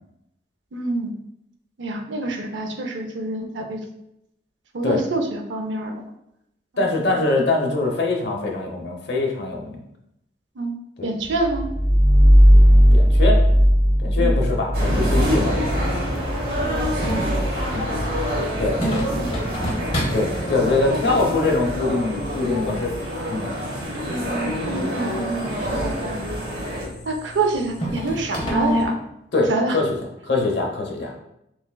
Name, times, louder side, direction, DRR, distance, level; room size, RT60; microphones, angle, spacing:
voice 1, 0.7-1.1 1.8-3.8 4.7-6.0 6.7-6.8 10.6-10.8 11.0-11.7 14.2-14.3 16.5-16.9 17.5-18.1 19.1-19.3 20.9-21.3 24.1-26.3 27.0-29.0 29.5-29.8, right 2 dB, 90° right, 4 dB, 0.6 m, -27 dB
voice 2, 6.8-9.8 11.0-11.1 12.9-13.4 14.0-15.8 17.7-17.9 18.6-18.8 20.1-22.9 23.3-23.5 24.7-24.8 29.3-30.0 30.2-31.1, left 3 dB, 65° left, 1 dB, 0.8 m, -23 dB
sound 1, 11.3-16.0, equal, 5° right, 0.3 m, -15 dB
sound 2, 14.7-26.9, equal, 55° right, 0.9 m, -26 dB
sound 3, 16.6-28.8, equal, 30° left, 0.8 m, -31 dB
6.3 x 2.3 x 2.2 m, 0.80 s
head